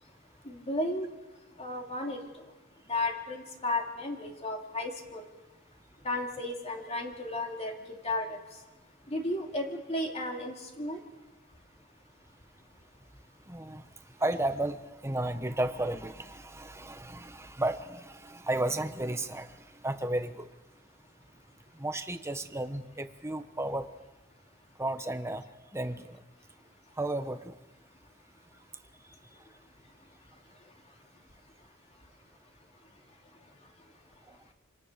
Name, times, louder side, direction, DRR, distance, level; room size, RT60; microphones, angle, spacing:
voice 1, 0.4-1.1 1.6-2.2 2.9-5.3 6.0-8.4 9.1-11.0, left 2 dB, 30° left, 1 dB, 2.8 m, -34 dB
voice 2, 13.5-13.8 14.2-20.5 21.7-23.9 24.8-25.4 25.7-26.2 27.0-27.5, right 1 dB, 10° right, 8 dB, 1.3 m, -33 dB
27.5 x 25.5 x 6.8 m, 1.2 s
head